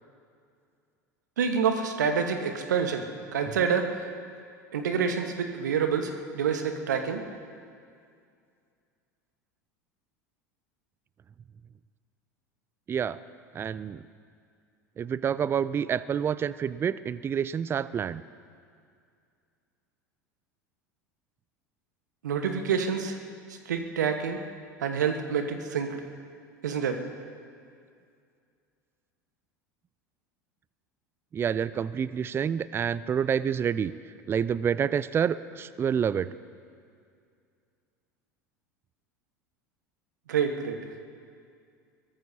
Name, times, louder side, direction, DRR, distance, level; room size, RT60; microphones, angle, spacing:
voice 1, 1.4-3.1 3.3-4.1 4.7-7.3 22.2-23.2 23.5-24.4 24.8-26.0 26.6-27.0 40.3-40.8, right 6 dB, 70° right, 6 dB, 1.4 m, -27 dB
voice 2, 13.5-14.0 15.0-18.2 31.3-33.9 34.3-36.3, right 8 dB, 25° right, 17 dB, 0.4 m, -28 dB
22.5 x 19.5 x 2.9 m, 2.3 s
figure-of-eight pair, 80°, 10 cm